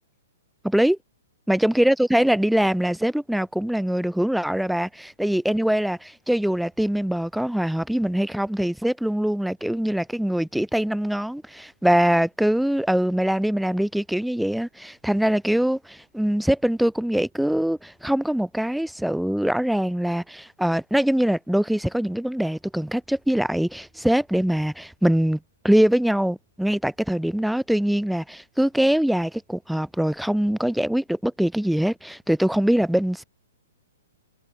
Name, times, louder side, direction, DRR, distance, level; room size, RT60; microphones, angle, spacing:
voice 1, 0.6-1.0 1.5-25.4 25.6-33.2, equal, ahead, 2.5 m, -23 dB
hypercardioid pair, 135°, 0 cm